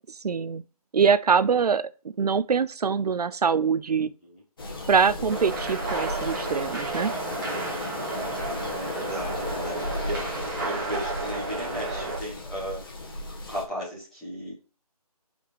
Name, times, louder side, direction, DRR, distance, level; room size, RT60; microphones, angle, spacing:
voice 1, 0.2-0.6 0.9-1.9 2.2-4.1 4.9-7.1, right 6 dB, 80° right, 0.5 m, -23 dB
voice 2, 4.0-4.4 8.5-13.1 13.5-14.5, equal, ahead, 1.2 m, -36 dB
sound 1, 4.6-13.6, left 2 dB, 35° left, 1.4 m, -35 dB
sound 2, 5.3-12.2, right 3 dB, 30° right, 1.9 m, -32 dB
5.9 x 4.4 x 4.4 m
hypercardioid pair, 175°, 20 cm